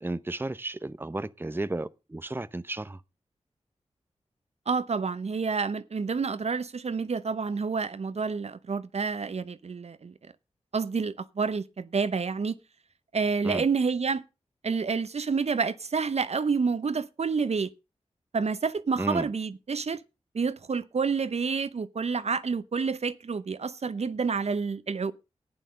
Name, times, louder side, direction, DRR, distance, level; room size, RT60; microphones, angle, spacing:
voice 1, 0.0-3.0 13.4-13.6 19.0-19.3, right 2 dB, 20° right, 0.7 m, -33 dB
voice 2, 4.7-10.1 10.7-12.6 13.1-14.2 14.6-17.7 18.3-20.0 20.3-25.1, right 5 dB, 60° right, 0.8 m, -29 dB
11.0 x 9.1 x 5.3 m
cardioid pair, 45°, 12 cm